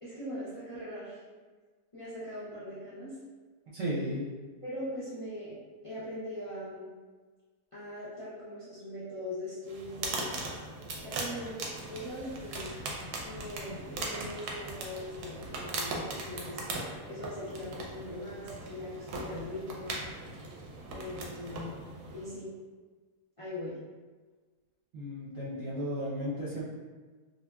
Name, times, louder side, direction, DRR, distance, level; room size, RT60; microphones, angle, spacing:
voice 1, 0.0-1.2 1.9-3.2 4.6-5.6 5.8-6.9 7.7-10.4 11.0-12.8 13.2-16.6 17.0-19.9 20.9-21.8 22.1-22.5 23.4-23.7, left 1 dB, 50° left, -12 dB, 0.3 m, -41 dB
voice 2, 3.7-4.3 24.9-26.6, equal, 60° right, -8 dB, 0.8 m, -34 dB
sound 1, 9.7-22.3, right 2 dB, 90° right, 1.1 m, -39 dB
2.7 x 2.7 x 2.2 m, 1.4 s
omnidirectional pair, 1.6 m